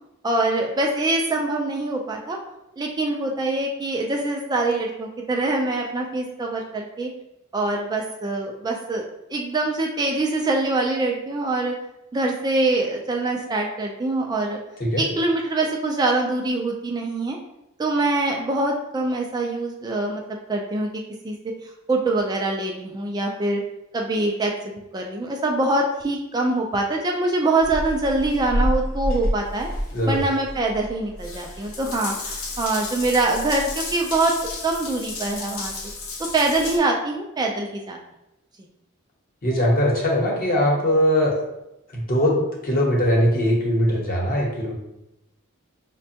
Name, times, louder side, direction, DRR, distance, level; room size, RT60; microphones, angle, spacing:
voice 1, 0.2-2.4 2.8-7.1 7.5-9.0 9.3-11.7 12.1-14.6 15.0-17.4 17.8-20.2 20.5-20.9 21.2-21.4 21.9-23.6 23.9-29.7 30.1-34.3 34.6-35.7 36.3-38.0, right 2 dB, 20° right, 1 dB, 0.3 m, -24 dB
Water tap faucet / Bathtub (filling or washing) / Drip, 27.6-36.8, left 1 dB, 80° left, 0.7 m, -30 dB
voice 2, 29.9-30.2 39.4-41.4 41.9-44.7, equal, 45° left, -2 dB, 0.9 m, -21 dB
5.1 x 2.2 x 2.7 m, 0.90 s
head